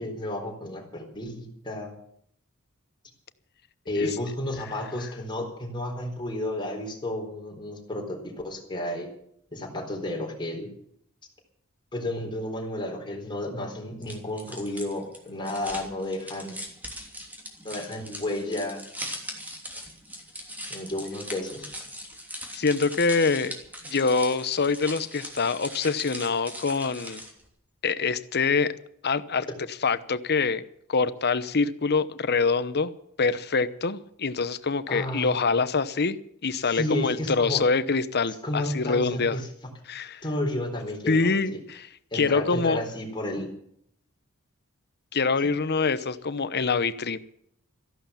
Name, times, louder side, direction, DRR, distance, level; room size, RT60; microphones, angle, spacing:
voice 1, 0.0-1.9 3.9-9.1 9.5-10.7 11.9-16.6 17.6-18.8 20.7-21.7 34.9-35.3 36.6-37.6 38.4-39.5 40.2-41.6 42.1-43.5 45.4-45.5, left 1 dB, 20° left, 1 dB, 4.1 m, -32 dB
sound 1, 14.0-27.5, equal, 10° right, 3.1 m, -40 dB
voice 2, 22.5-23.5 23.9-27.2 27.8-28.7 29.0-29.5 29.8-30.6 30.9-32.9 33.2-39.4 39.9-40.2 41.1-41.9 42.1-42.8 45.1-47.2, left 4 dB, 50° left, 14 dB, 0.9 m, -25 dB
14.5 x 11.5 x 7.1 m, 0.70 s
head